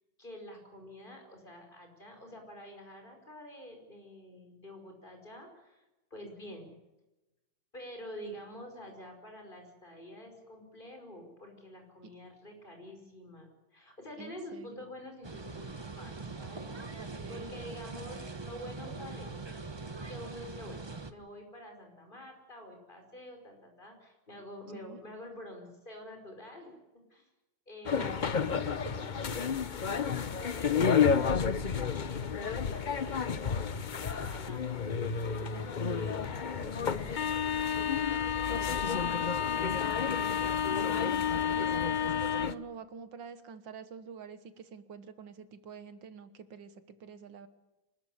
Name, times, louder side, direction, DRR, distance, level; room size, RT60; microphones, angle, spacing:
voice 1, 0.2-5.8 6.1-6.7 7.7-19.3 20.1-20.8 21.1-26.8 27.1-27.3 27.7-28.2 29.3-39.9, left 1 dB, 25° left, 4 dB, 5.6 m, -48 dB
voice 2, 14.2-14.9 17.0-17.5 24.7-25.0 27.9-29.1 38.1-38.4 40.7-47.5, right 6 dB, 75° right, 12 dB, 2.1 m, -47 dB
sound 1, 15.2-21.1, right 3 dB, 20° right, 0.7 m, -42 dB
sound 2, 27.9-42.5, left 7 dB, 55° left, 0.5 m, -30 dB
25.5 x 13.0 x 9.9 m, 1.0 s
omnidirectional pair, 2.0 m